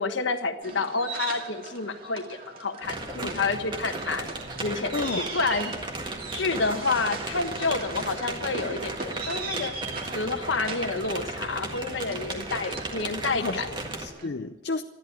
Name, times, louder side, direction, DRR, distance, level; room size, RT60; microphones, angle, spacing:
voice 1, 0.0-4.3 4.6-5.7 6.3-9.7 10.1-13.7, left 4 dB, 75° left, 8 dB, 1.3 m, -29 dB
sound 1, 0.6-14.3, right 4 dB, 50° right, 2.2 m, -39 dB
sound 2, 2.8-14.1, right 2 dB, 25° right, 1.7 m, -36 dB
voice 2, 4.9-5.4 13.3-14.8, left 3 dB, 60° left, 9 dB, 0.5 m, -32 dB
13.5 x 11.0 x 8.9 m, 1.1 s
head